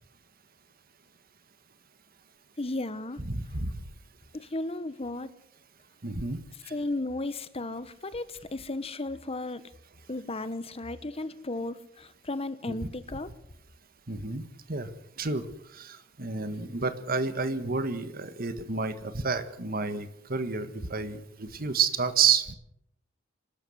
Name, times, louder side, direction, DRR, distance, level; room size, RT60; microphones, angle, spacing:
voice 1, 2.6-3.2 4.3-5.3 6.7-9.6 10.1-13.3, left 2 dB, 30° left, 14 dB, 1.1 m, -34 dB
voice 2, 3.3-3.7 6.0-6.4 6.6-6.7 12.7-12.8 14.1-14.4 14.7-14.9 15.2-15.5 15.7-22.5, right 5 dB, 45° right, 12 dB, 1.6 m, -29 dB
26.0 x 13.0 x 8.0 m, 0.77 s
head